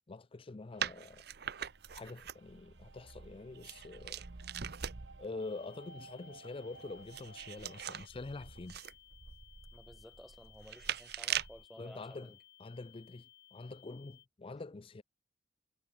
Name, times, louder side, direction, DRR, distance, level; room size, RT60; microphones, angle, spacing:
voice 1, 0.1-1.3 1.9-4.3 5.2-8.8 11.8-12.3 12.6-15.0, left 3 dB, 30° left, 0.5 m, -46 dB
sound 1, 0.7-8.0, right 4 dB, 80° right, 1.6 m, -58 dB
sound 2, 0.8-5.3 6.8-11.6, right 9 dB, 60° right, 0.9 m, -42 dB
sound 3, 5.4-14.3, left 13 dB, 60° left, 2.0 m, -61 dB
voice 2, 9.7-12.4, equal, ahead, 1.2 m, -55 dB
head